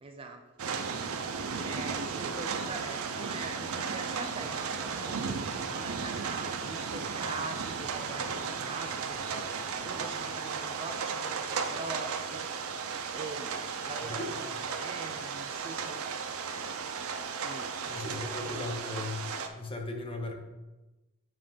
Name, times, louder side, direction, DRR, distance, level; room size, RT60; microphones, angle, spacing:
voice 1, 0.0-0.8 1.6-5.2 5.7-9.4 9.8-12.5 13.1-16.0 17.4-18.7, right 3 dB, 25° right, 5 dB, 0.4 m, -43 dB
sound 1, 0.6-19.5, right 5 dB, 85° right, 0.5 m, -35 dB
voice 2, 14.0-14.4 17.9-19.3 19.5-20.3, left 2 dB, 25° left, 3 dB, 0.7 m, -37 dB
7.4 x 2.5 x 5.5 m, 1.1 s
head